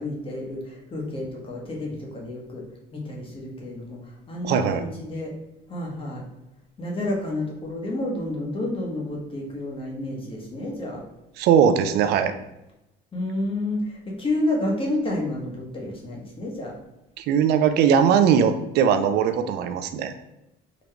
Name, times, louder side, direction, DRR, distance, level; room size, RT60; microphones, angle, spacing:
voice 1, 0.0-2.6 2.9-4.0 4.3-5.3 5.7-6.2 6.8-11.0 13.1-16.7, left 1 dB, 30° left, -2 dB, 1.2 m, -30 dB
voice 2, 4.4-4.8 11.4-12.3 17.2-20.1, right 7 dB, 75° right, 9 dB, 0.4 m, -20 dB
3.8 x 3.0 x 3.3 m, 0.91 s
cardioid pair, 110°, 17 cm